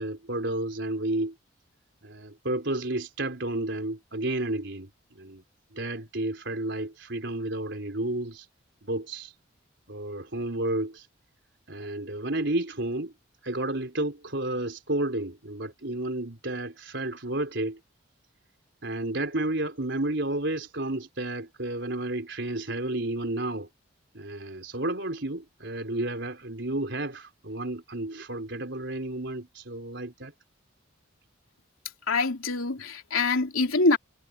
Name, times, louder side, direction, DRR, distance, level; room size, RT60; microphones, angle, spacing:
voice 1, 0.0-1.3 2.0-4.9 5.2-5.4 5.7-8.5 8.8-9.3 9.9-11.1 11.7-13.1 13.4-17.8 18.8-23.7 24.1-30.3, right 1 dB, 60° right, 4.0 m, -31 dB
voice 2, 32.1-34.0, left 3 dB, 85° left, 3.3 m, -24 dB
head